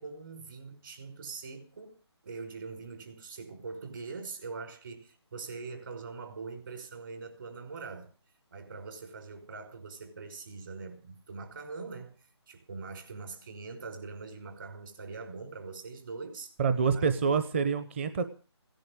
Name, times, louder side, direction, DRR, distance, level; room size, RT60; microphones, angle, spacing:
voice 1, 0.0-2.0 2.2-8.1 8.5-12.1 12.5-16.5 16.9-17.2, right 4 dB, 50° right, 5.5 m, -43 dB
voice 2, 16.6-18.2, right 5 dB, 25° right, 0.9 m, -27 dB
17.5 x 10.5 x 6.3 m
hypercardioid pair, 165°, 15 cm